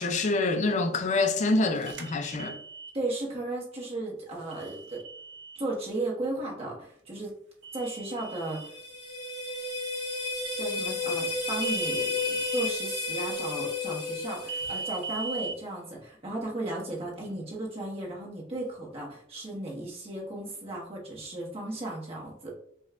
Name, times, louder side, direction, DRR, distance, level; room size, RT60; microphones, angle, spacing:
voice 1, 0.0-2.6, left 3 dB, 40° left, 0.4 m, -26 dB
sound 1, 1.8-2.9 4.5-5.6 7.6-8.7 11.5-12.7 14.5-15.5, right 4 dB, 70° right, 0.5 m, -38 dB
voice 2, 2.9-5.0 5.6-7.4 7.7-8.7 10.6-12.2 12.5-22.5, right 2 dB, 30° right, 1.1 m, -35 dB
sound 2, 8.3-15.3, left 3 dB, 25° left, 1.0 m, -32 dB
5.0 x 2.2 x 2.4 m
head